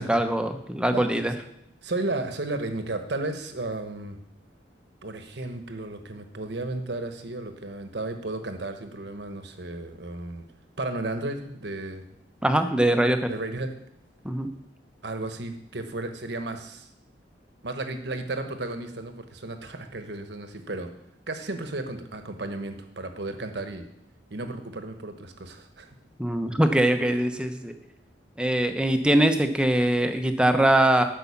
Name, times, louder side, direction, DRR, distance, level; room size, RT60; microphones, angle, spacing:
voice 1, 0.0-1.3 12.4-13.3 14.2-14.5 26.2-27.7 28.4-31.0, right 1 dB, 5° right, 7 dB, 0.8 m, -22 dB
voice 2, 1.8-4.2 5.0-10.4 10.8-12.0 13.3-13.7 15.0-16.9 17.6-20.9 21.3-23.8 24.3-25.9, right 2 dB, 65° right, 7 dB, 1.2 m, -33 dB
11.0 x 5.6 x 7.1 m, 0.76 s
head